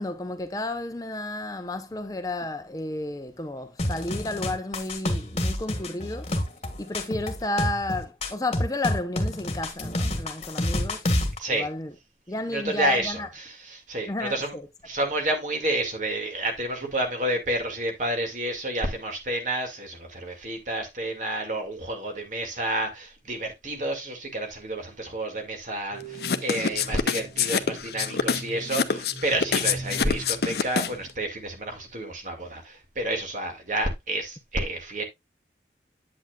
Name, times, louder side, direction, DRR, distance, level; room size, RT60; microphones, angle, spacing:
voice 1, 0.0-6.3 6.8-11.1 11.5-11.9 12.3-13.3 14.1-14.7, left 2 dB, 20° left, 0.7 m, -32 dB
sound 1, 3.8-11.4, left 1 dB, 35° left, 1.5 m, -28 dB
voice 2, 12.5-14.5 14.8-35.0, right 1 dB, 45° right, 2.2 m, -30 dB
sound 2, 25.9-31.3, right 2 dB, 75° right, 4.3 m, -42 dB
sound 3, 26.2-31.1, left 6 dB, 65° left, 0.7 m, -26 dB
8.7 x 8.1 x 2.4 m
head